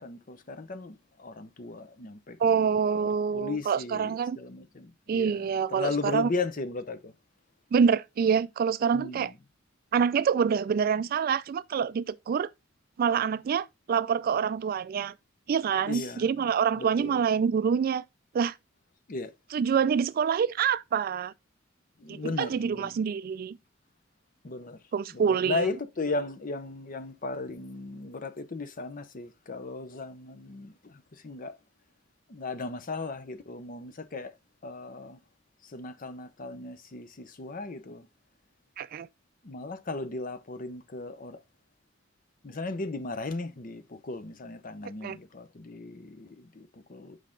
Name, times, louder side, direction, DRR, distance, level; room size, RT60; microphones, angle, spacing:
voice 1, 0.0-2.7 3.3-7.1 8.9-9.3 15.9-16.4 16.8-17.2 19.1-19.3 22.0-23.0 24.4-24.8 25.1-31.6 32.3-34.3 34.6-35.2 35.7-38.1 39.4-41.4 42.4-47.2, left 3 dB, 45° left, 0.7 m, -36 dB
voice 2, 2.4-4.4 5.1-6.3 7.7-9.3 9.9-12.5 13.0-15.1 15.5-18.0 18.3-18.5 19.5-21.3 22.1-23.6 24.9-25.7 38.8-39.1 45.0-45.2, right 6 dB, 50° right, 0.3 m, -26 dB
6.4 x 4.9 x 3.7 m
head